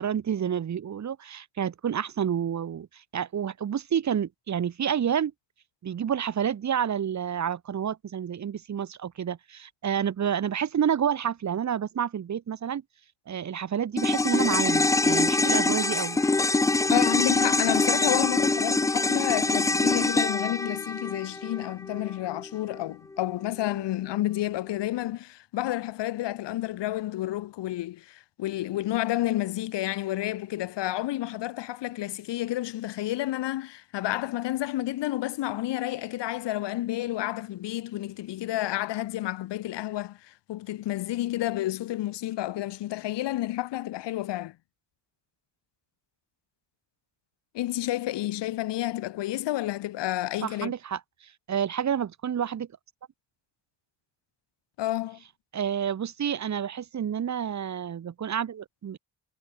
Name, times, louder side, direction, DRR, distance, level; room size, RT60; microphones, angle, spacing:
voice 1, 0.0-5.3 5.8-12.8 13.3-16.2 50.4-51.0 51.5-52.7 55.5-59.0, right 8 dB, 40° right, 2.7 m, -29 dB
sound 1, 14.0-22.5 22.7-22.8, left 3 dB, 10° left, 0.3 m, -24 dB
voice 2, 16.9-44.5 47.5-50.7 54.8-55.2, left 15 dB, 80° left, 1.6 m, -30 dB
cardioid pair, 165°, 42 cm